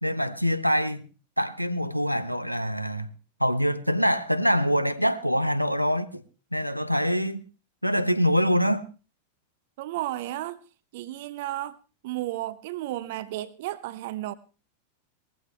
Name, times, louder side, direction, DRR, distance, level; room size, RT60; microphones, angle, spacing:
voice 1, 0.0-1.0 1.4-3.1 3.4-6.2 6.5-7.4 7.8-8.8, equal, 90° right, 1.0 m, -24 dB
voice 2, 9.8-10.6 10.9-11.8 12.0-14.3, right 15 dB, 50° right, 0.8 m, -33 dB
19.5 x 15.0 x 3.3 m
figure-of-eight pair, 90°, 0 cm